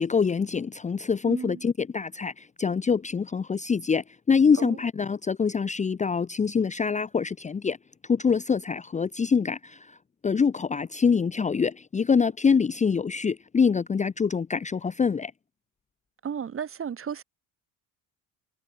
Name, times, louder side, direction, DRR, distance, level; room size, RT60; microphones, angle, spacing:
voice 1, 0.0-7.8 8.1-10.0 10.2-15.3, left 5 dB, 20° left, 0.9 m, -25 dB
voice 2, 1.3-1.6 4.6-4.8 16.2-17.2, right 7 dB, 35° right, 5.5 m, -34 dB
cardioid pair, 155°, 39 cm